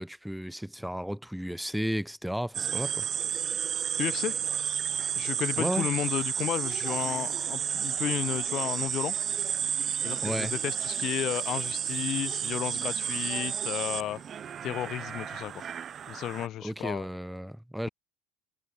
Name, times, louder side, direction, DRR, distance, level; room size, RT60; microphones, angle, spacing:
voice 1, 0.0-3.1 5.6-5.9 10.2-10.5 16.6-17.9, equal, ahead, 3.6 m, -33 dB
sound 1, 2.5-16.5, right 8 dB, 40° right, 0.8 m, -32 dB
voice 2, 4.0-4.4 5.2-9.2 10.0-14.2 14.6-15.6 16.1-17.1, left 12 dB, 50° left, 2.9 m, -33 dB
hypercardioid pair, 80°, 0 cm